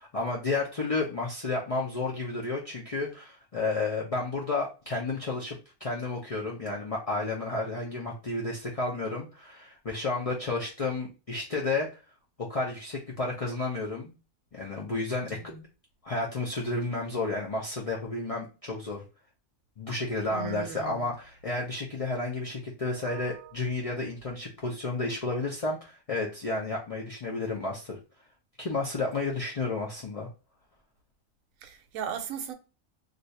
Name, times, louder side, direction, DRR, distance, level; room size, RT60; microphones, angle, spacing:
voice 1, 0.0-11.9 12.4-14.1 14.5-15.5 16.0-19.0 19.8-28.0 28.6-30.3, left 3 dB, 60° left, 0.3 m, -31 dB
voice 2, 15.2-15.6 20.3-21.1 23.0-23.5 31.6-32.5, right 7 dB, 75° right, 1.0 m, -38 dB
2.6 x 2.4 x 4.1 m
omnidirectional pair, 1.5 m